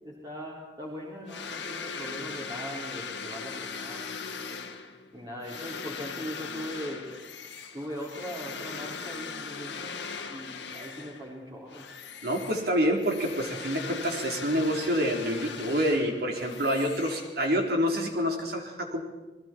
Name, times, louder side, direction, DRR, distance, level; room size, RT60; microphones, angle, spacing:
voice 1, 0.0-4.3 5.1-7.0 7.7-9.9 10.3-11.8, equal, 25° right, -5 dB, 4.1 m, -40 dB
sound 1, 1.3-11.3 11.7-17.7, left 5 dB, 90° left, 2.0 m, -40 dB
voice 2, 12.2-19.0, equal, 60° right, 1 dB, 4.0 m, -27 dB
29.5 x 20.5 x 4.6 m, 1.2 s
head